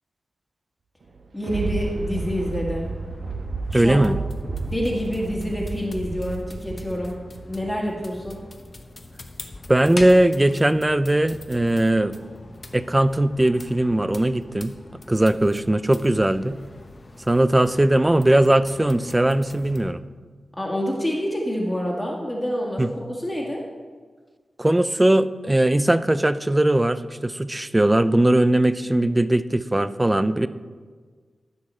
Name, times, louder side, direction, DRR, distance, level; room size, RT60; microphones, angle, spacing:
Thunder, 1.0-8.6 9.1-9.2, right 3 dB, 75° right, 1.1 m, -32 dB
voice 1, 1.3-2.9 3.7-4.1 4.6-7.2 7.5-8.5 20.6-22.9 23.2-23.6, equal, 15° left, -2 dB, 1.7 m, -27 dB
sound 1, 1.5-19.9, left 2 dB, 40° left, 0.9 m, -43 dB
voice 2, 3.7-4.2 9.7-12.1 12.7-14.7 15.1-16.6 17.3-20.0 22.8-22.9 24.6-30.5, right 1 dB, 15° right, 13 dB, 0.4 m, -19 dB
15.0 x 6.3 x 4.3 m, 1.5 s
wide cardioid pair, 85°, 0 cm